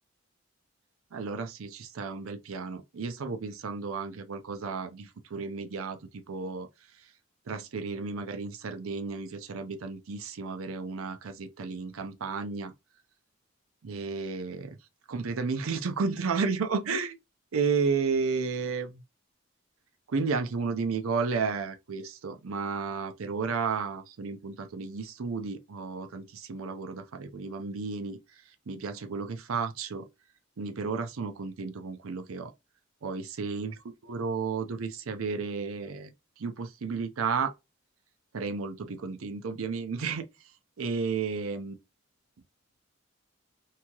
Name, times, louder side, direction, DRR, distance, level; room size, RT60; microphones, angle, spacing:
voice 1, 1.1-6.7 7.5-12.7 13.8-14.8 15.1-17.2 17.5-19.0 20.1-28.2 28.7-30.1 30.6-32.5 33.0-33.7 34.1-37.5 38.3-40.3 40.8-41.7, right 5 dB, 85° right, 0.5 m, -32 dB
3.0 x 2.7 x 2.3 m
head